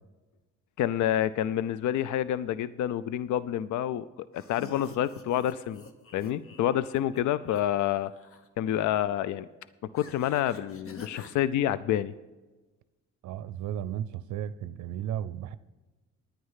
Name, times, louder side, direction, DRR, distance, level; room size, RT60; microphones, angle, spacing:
voice 1, 0.8-4.1 4.3-5.8 6.1-8.1 8.6-9.5 9.9-12.1, left 11 dB, 70° left, 0.5 m, -28 dB
sound 1, 4.3-7.6 7.9-8.5 10.0-11.4, left 4 dB, 45° left, 1.2 m, -48 dB
voice 2, 13.2-15.6, right 10 dB, 70° right, 0.6 m, -34 dB
10.0 x 9.6 x 5.6 m
cardioid pair, 90°, 30 cm